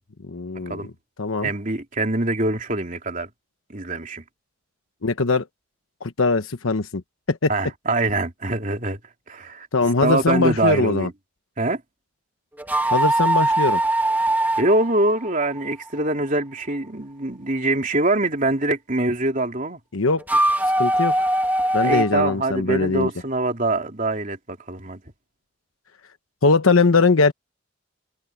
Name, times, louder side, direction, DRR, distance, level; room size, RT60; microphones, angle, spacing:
voice 1, 0.3-0.9 1.2-1.5 5.0-5.4 6.0-7.0 7.3-7.5 9.7-11.1 12.9-13.8 19.9-20.4 20.8-21.3 21.7-23.1 26.4-27.3, left 3 dB, 90° left, 1.1 m, -21 dB
voice 2, 1.4-3.3 3.7-4.2 7.5-9.0 9.3-9.7 10.0-11.1 11.6-11.8 14.6-19.8 21.8-25.0, right 2 dB, 40° right, 3.2 m, -24 dB
sound 1, 12.6-15.9 20.2-22.3, right 1 dB, 10° right, 1.5 m, -21 dB
head